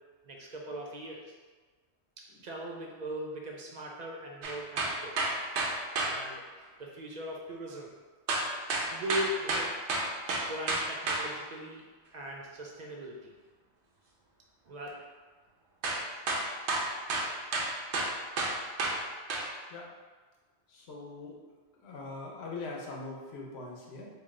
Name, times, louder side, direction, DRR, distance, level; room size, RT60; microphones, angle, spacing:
voice 1, 0.2-1.3 2.2-5.2 6.0-6.5 6.8-7.9 8.9-9.7 10.5-11.9 12.1-13.3 14.6-14.9, equal, 55° right, -1 dB, 0.5 m, -39 dB
sound 1, 4.4-6.1 8.3-11.2 15.8-16.0 16.3-19.0 19.3-19.5, right 2 dB, 85° right, 0.9 m, -30 dB
voice 2, 20.7-21.4 21.8-24.1, left 3 dB, 70° left, -2 dB, 1.0 m, -42 dB
3.1 x 2.6 x 3.6 m, 1.4 s
omnidirectional pair, 1.1 m